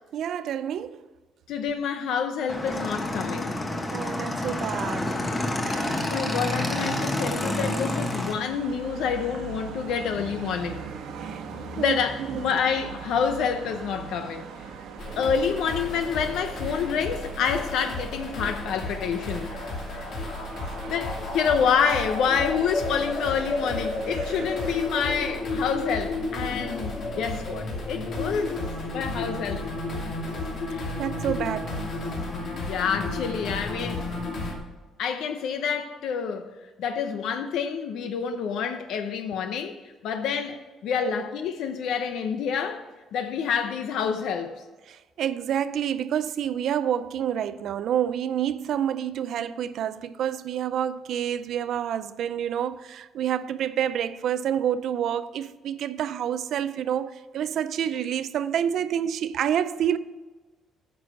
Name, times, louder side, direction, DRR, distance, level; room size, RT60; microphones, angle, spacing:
voice 1, 0.1-1.0 3.9-5.1 11.2-11.4 11.8-12.0 12.3-12.4 31.0-31.8 41.2-41.3 44.9-60.0, right 9 dB, 65° right, 0.5 m, -28 dB
voice 2, 1.5-3.5 6.0-10.8 11.7-14.4 15.2-19.5 20.0-20.1 20.9-28.6 28.9-29.6 30.7-30.8 32.7-34.0 35.0-36.5 36.8-39.8 40.0-42.8 43.1-44.6, left 7 dB, 75° left, 0.7 m, -28 dB
Motorcycle / Engine, 2.5-8.3, left 1 dB, 20° left, 1.2 m, -28 dB
sound 1, 5.7-24.8, right 6 dB, 80° right, 1.3 m, -41 dB
sound 2, 15.0-34.5, left 2 dB, 55° left, 2.7 m, -32 dB
9.4 x 6.1 x 6.5 m
cardioid pair, 130°, 0 cm